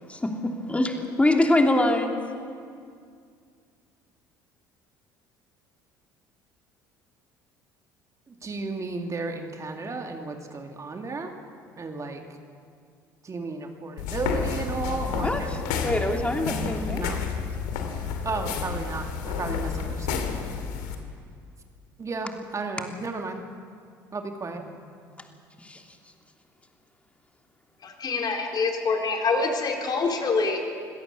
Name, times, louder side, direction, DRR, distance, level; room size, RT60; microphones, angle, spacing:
voice 1, 0.1-2.2 15.2-15.4 15.8-17.1 24.6-24.7 25.6-25.8, left 1 dB, 10° left, 3 dB, 3.1 m, -24 dB
voice 2, 8.3-11.3 11.8-12.2 13.2-15.5 16.9-17.2 18.2-20.2 22.0-23.4 24.1-24.6, right 3 dB, 30° right, 4 dB, 2.4 m, -33 dB
sound 1, 14.0-21.0, left 6 dB, 75° left, 2.4 m, -30 dB
voice 3, 27.8-30.7, left 4 dB, 40° left, 1 dB, 4.1 m, -25 dB
26.5 x 17.0 x 7.1 m, 2.2 s
hypercardioid pair, 60°, 10 cm